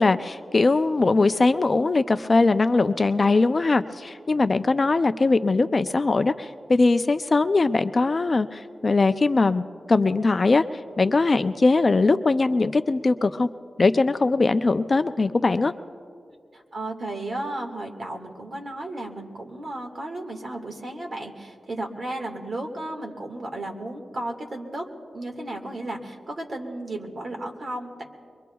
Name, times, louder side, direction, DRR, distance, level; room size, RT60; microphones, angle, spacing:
voice 1, 0.0-9.6 9.9-13.5 13.8-15.7, left 3 dB, 35° left, 10 dB, 0.3 m, -21 dB
voice 2, 16.5-24.8 25.1-28.0, right 1 dB, 50° right, 2 dB, 1.6 m, -34 dB
23.5 x 23.0 x 2.3 m, 2.2 s
wide cardioid pair, 160°, 0 cm